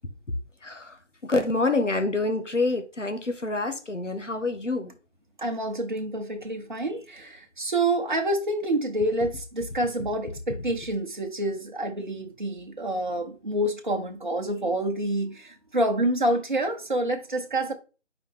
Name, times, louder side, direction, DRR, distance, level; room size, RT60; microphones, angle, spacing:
voice 1, 0.6-1.0 1.2-4.9, left 2 dB, 85° left, 1.4 m, -27 dB
voice 2, 5.4-17.7, right 1 dB, 40° right, 1.1 m, -27 dB
8.5 x 4.9 x 3.5 m
figure-of-eight pair, 170°, 36 cm